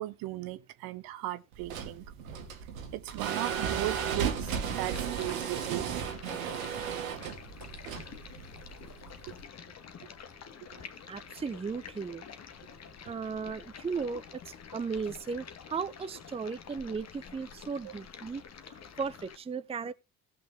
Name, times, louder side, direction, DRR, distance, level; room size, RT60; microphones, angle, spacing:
voice 1, 0.0-2.0 2.9-5.9 6.8-6.9, right 16 dB, 60° right, 1.0 m, -37 dB
sound 1, 1.5-9.4, right 8 dB, 75° right, 1.5 m, -35 dB
Stream, 4.4-19.4, left 7 dB, 40° left, 1.4 m, -48 dB
voice 2, 11.1-12.2 13.0-18.4 18.7-19.9, right 5 dB, 15° right, 0.6 m, -36 dB
18.5 x 6.3 x 2.7 m
figure-of-eight pair, 50°, 41 cm